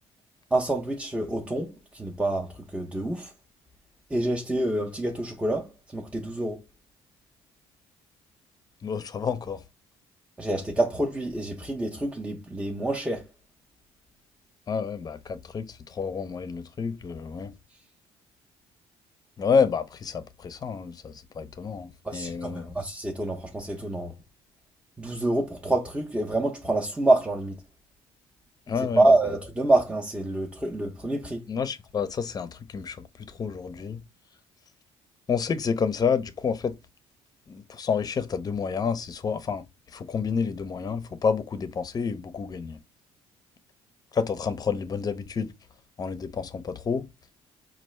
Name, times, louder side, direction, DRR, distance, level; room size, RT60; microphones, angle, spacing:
voice 1, 0.5-3.3 4.1-6.6 10.4-13.3 22.0-24.1 25.0-27.6 29.0-31.4, right 2 dB, 10° right, 0.6 m, -27 dB
voice 2, 8.8-9.6 14.7-17.5 19.4-22.7 28.7-29.1 31.5-33.0 33.3-34.0 35.3-36.7 37.5-39.6 39.9-42.8 44.1-45.5 46.0-47.1, left 6 dB, 35° left, 0.6 m, -29 dB
4.4 x 2.4 x 3.1 m
cardioid pair, 90°, 12 cm